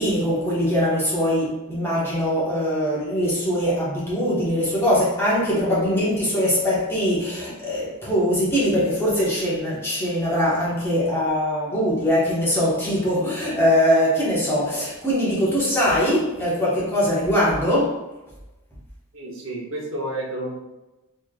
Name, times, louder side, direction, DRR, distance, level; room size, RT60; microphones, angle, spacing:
voice 1, 0.0-18.1, equal, 10° left, -8 dB, 1.2 m, -22 dB
voice 2, 19.1-20.5, right 1 dB, 60° right, -2 dB, 0.9 m, -30 dB
4.3 x 3.2 x 2.3 m, 1.0 s
head